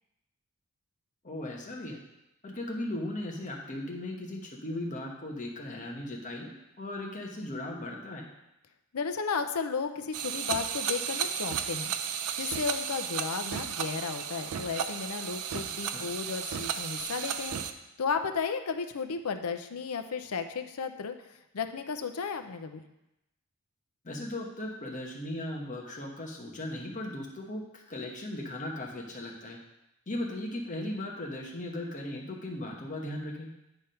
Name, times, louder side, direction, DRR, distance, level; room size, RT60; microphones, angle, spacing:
voice 1, 1.2-2.0 2.4-8.3 15.9-16.1 24.0-29.6 30.1-33.5, left 1 dB, 35° left, 0 dB, 1.1 m, -37 dB
voice 2, 8.9-11.9 12.4-17.6 18.0-22.9, left 5 dB, 80° left, 7 dB, 0.6 m, -34 dB
sound 1, 10.1-17.7, right 8 dB, 85° right, 0.5 m, -34 dB
9.1 x 3.5 x 5.6 m, 0.91 s
head